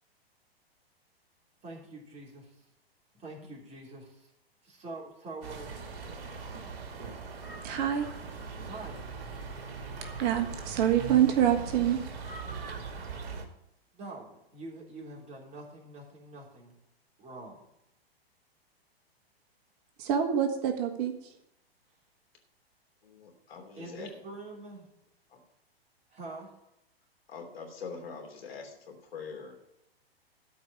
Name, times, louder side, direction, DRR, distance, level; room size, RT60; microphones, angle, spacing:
voice 1, 1.6-2.5 3.1-4.3 4.6-5.8 8.7-9.0 13.9-16.7 17.2-17.6 23.8-24.9 26.1-26.5, right 2 dB, 20° right, -2 dB, 3.3 m, -45 dB
sound 1, 5.4-13.4, right 4 dB, 65° right, 2.0 m, -40 dB
voice 2, 7.6-8.1 10.2-12.0 20.0-21.1, right 10 dB, 40° right, 5 dB, 1.5 m, -26 dB
voice 3, 23.0-24.1 25.3-25.4 27.3-29.6, left 5 dB, 70° left, 2 dB, 3.1 m, -44 dB
13.0 x 4.8 x 8.4 m, 0.83 s
figure-of-eight pair, 110°, 31 cm